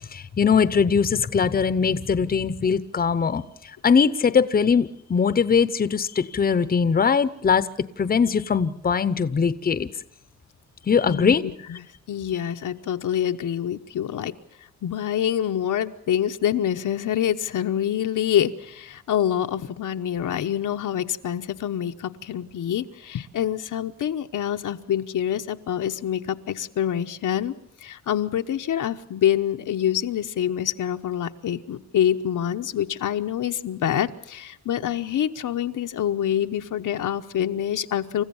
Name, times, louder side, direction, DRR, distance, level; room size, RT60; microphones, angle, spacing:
voice 1, 0.1-3.4 3.8-7.7 8.0-9.9 10.9-11.4, left 6 dB, 30° left, 14 dB, 0.8 m, -21 dB
voice 2, 11.1-14.3 14.8-27.5 27.8-38.2, left 10 dB, 85° left, 6 dB, 1.1 m, -26 dB
28.5 x 15.0 x 7.1 m, 0.75 s
wide cardioid pair, 145°, 31 cm